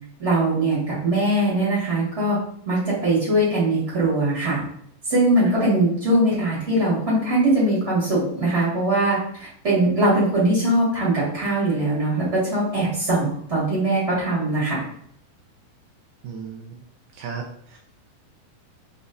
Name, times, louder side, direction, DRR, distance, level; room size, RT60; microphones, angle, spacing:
voice 1, 0.2-2.4 2.6-4.6 5.1-14.8, right 1 dB, 35° right, -7 dB, 1.0 m, -21 dB
voice 2, 16.2-16.8 17.1-17.8, right 6 dB, 85° right, 0 dB, 1.9 m, -35 dB
7.0 x 2.4 x 2.6 m, 0.66 s
omnidirectional pair, 4.2 m